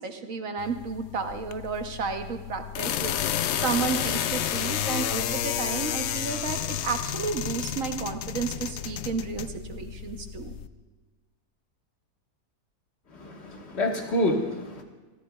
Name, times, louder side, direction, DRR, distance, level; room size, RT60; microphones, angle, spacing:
voice 1, 0.0-10.5, right 5 dB, 60° right, 6 dB, 1.3 m, -32 dB
sound 1, 0.6-10.7, left 10 dB, 75° left, 0.6 m, -31 dB
voice 2, 13.1-14.8, left 1 dB, 45° left, 2 dB, 1.8 m, -28 dB
28.0 x 13.5 x 2.3 m, 1.3 s
omnidirectional pair, 1.6 m